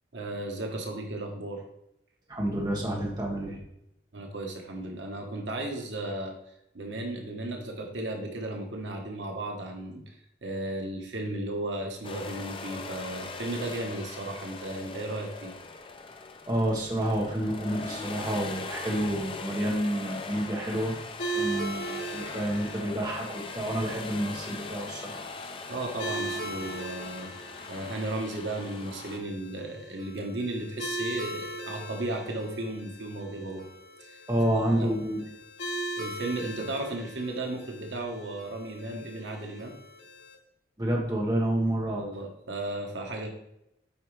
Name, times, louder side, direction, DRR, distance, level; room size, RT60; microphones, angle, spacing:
voice 1, 0.1-1.6 4.1-6.3 6.7-15.5 25.7-27.3 27.7-33.7 34.0-34.2 34.5-34.9 36.0-39.8 41.9-43.3, right 2 dB, 80° right, 2 dB, 1.2 m, -35 dB
voice 2, 2.3-3.6 16.5-20.9 21.3-25.2 34.3-35.2 40.8-42.0, right 1 dB, 20° right, -2 dB, 1.4 m, -29 dB
sound 1, 12.0-29.2, left 4 dB, 30° left, 0.5 m, -41 dB
sound 2, 21.2-40.3, right 1 dB, 85° left, 1.8 m, -39 dB
8.7 x 4.9 x 3.2 m, 0.81 s
head